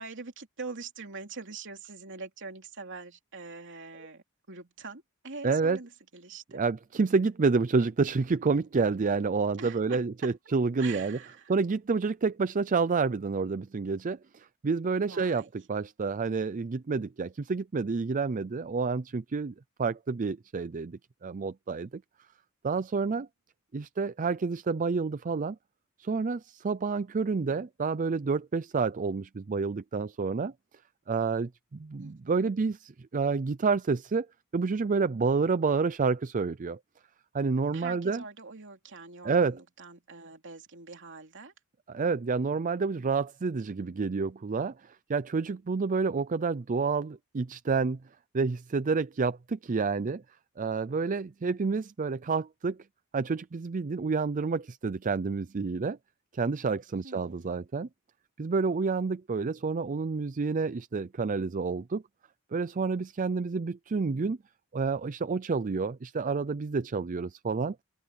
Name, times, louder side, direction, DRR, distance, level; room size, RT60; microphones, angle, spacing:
voice 1, 0.0-6.6 9.6-10.3 10.8-11.5 15.0-15.5 32.0-32.5 37.7-41.5 57.0-57.6, right 4 dB, 55° right, 3.0 m, -44 dB
voice 2, 5.4-5.8 6.5-11.2 11.5-15.4 15.7-22.0 22.6-23.3 23.7-25.6 26.0-30.5 31.1-34.3 34.5-36.8 37.3-38.2 39.2-39.5 41.9-48.0 48.3-50.2 50.6-52.8 53.1-56.0 56.3-57.9 58.4-62.0 62.5-64.4 64.7-67.8, right 4 dB, 35° right, 0.4 m, -29 dB
open air
head